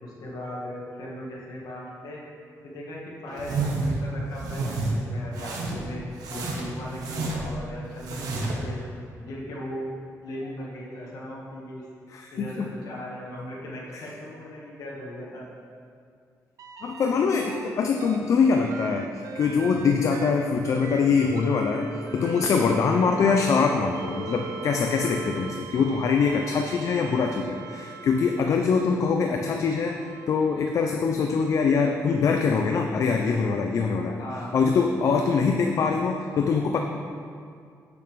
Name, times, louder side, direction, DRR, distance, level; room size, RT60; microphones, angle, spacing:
voice 1, 0.0-2.2 2.6-6.0 6.3-8.8 9.2-9.9 10.2-11.8 12.3-15.4 23.1-23.3 34.2-34.5, left 1 dB, 80° left, -4 dB, 1.7 m, -38 dB
sound 1, 3.4-4.0 4.3-4.9 5.3-5.9 6.2-7.6 8.0-8.6, right 3 dB, 85° right, 1.2 m, -29 dB
voice 2, 12.1-12.6 16.8-29.9 30.3-34.2 34.5-36.8, left 5 dB, 55° left, 3 dB, 0.5 m, -23 dB
sound 2, 16.6-17.7 18.0-28.8 29.6-31.2 32.9-33.0, right 5 dB, 65° right, 0.6 m, -41 dB
8.0 x 6.9 x 3.4 m, 2.2 s
cardioid pair, 120°, 6 cm